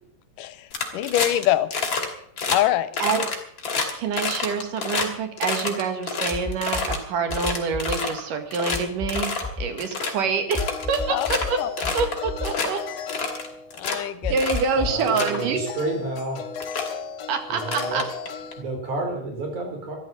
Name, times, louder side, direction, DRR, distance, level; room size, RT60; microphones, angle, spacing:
voice 1, 0.4-1.7 2.5-2.9 11.1-11.3 11.6-11.9 13.7-14.4, left 13 dB, 90° left, 14 dB, 2.5 m, -24 dB
sound 1, 0.7-1.4 1.7-2.1 2.4-2.6 2.9-5.1 5.4-7.0 7.3-8.2 8.5-8.8 9.1-9.5 9.8-10.1 10.5-11.5 11.8-12.2 12.4-12.7 13.1-14.0 14.4-14.7 15.0-15.4 16.2-16.3 16.6-16.9 17.6-18.5, left 4 dB, 40° left, 3.1 m, -28 dB
voice 2, 3.9-9.3 9.6-11.6 11.9-12.8 14.3-15.6 17.3-18.0, right 5 dB, 80° right, 7 dB, 3.5 m, -26 dB
sound 2, 6.3-7.0 7.3-8.0 8.7-9.7 10.5-11.5 11.8-12.5 14.2-15.0, left 4 dB, 15° left, 1.8 m, -31 dB
sound 3, 10.6-13.9 15.2-18.6, left 5 dB, 60° left, 2.1 m, -35 dB
voice 3, 14.7-16.4 17.5-18.1 18.6-20.0, right 2 dB, 60° right, 2 dB, 6.0 m, -30 dB
13.5 x 12.0 x 7.4 m, 0.66 s
omnidirectional pair, 3.8 m